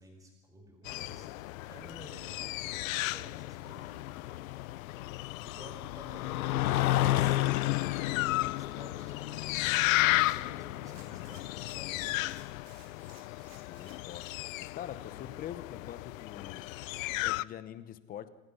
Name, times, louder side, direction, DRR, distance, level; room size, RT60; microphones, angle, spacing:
voice 1, 0.0-1.4 1.7-4.1 5.4-7.4 7.9-12.3, right 1 dB, 10° right, 3 dB, 5.2 m, -52 dB
sound 1, 0.8-17.4, left 20 dB, 65° left, 0.6 m, -35 dB
sound 2, 2.0-12.6, left 15 dB, 85° left, 1.1 m, -33 dB
sound 3, 9.5-10.5 10.8-14.4 14.9-15.0, right 7 dB, 45° right, 5.7 m, -59 dB
voice 2, 13.5-14.3 14.6-16.6 16.9-18.3, left 10 dB, 20° left, 14 dB, 0.9 m, -44 dB
27.5 x 19.0 x 5.6 m, 1.1 s
supercardioid pair, 165°, 42 cm